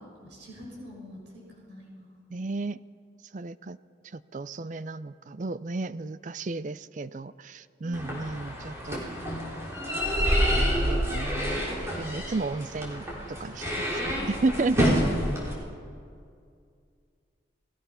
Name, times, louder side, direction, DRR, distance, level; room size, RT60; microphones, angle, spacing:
voice 1, 0.0-2.1 7.8-8.3, left 1 dB, 70° right, -3 dB, 6.0 m, -46 dB
voice 2, 2.3-2.8 3.3-3.8 4.1-9.0 10.5-15.0, right 3 dB, 40° right, 16 dB, 0.4 m, -33 dB
sound 1, 7.9-15.5, equal, 15° right, 3.7 m, -28 dB
28.5 x 17.5 x 5.8 m, 2.3 s
head